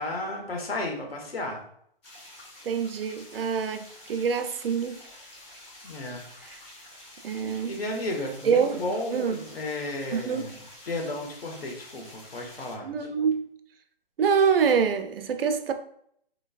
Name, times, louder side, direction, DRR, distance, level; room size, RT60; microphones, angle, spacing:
voice 1, 0.0-1.6 5.8-6.7 7.4-10.6 10.9-13.0, left 2 dB, 85° left, 1.3 m, -33 dB
sound 1, 2.0-12.8, left 1 dB, 30° left, 1.2 m, -48 dB
voice 2, 2.6-5.0 7.2-7.8 8.4-8.8 9.1-9.4 10.1-10.5 12.8-13.5 14.2-15.7, right 6 dB, 75° right, 0.6 m, -25 dB
3.9 x 3.1 x 2.3 m
hypercardioid pair, 155°, 29 cm